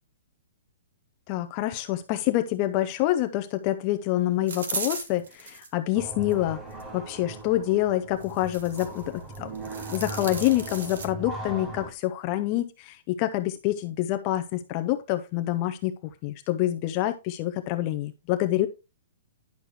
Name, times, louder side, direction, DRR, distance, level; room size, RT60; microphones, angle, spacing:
voice 1, 1.3-6.6 6.9-9.5 9.9-18.7, left 14 dB, 25° left, 8 dB, 0.5 m, -27 dB
sound 1, 4.5-5.7 6.3-6.9 8.2-9.0 9.3-11.1, right 4 dB, 85° right, 2.2 m, -36 dB
sound 2, 5.9-11.9, right 2 dB, 15° right, 0.8 m, -39 dB
10.5 x 6.4 x 3.1 m, 0.27 s
hypercardioid pair, 175°, 0 cm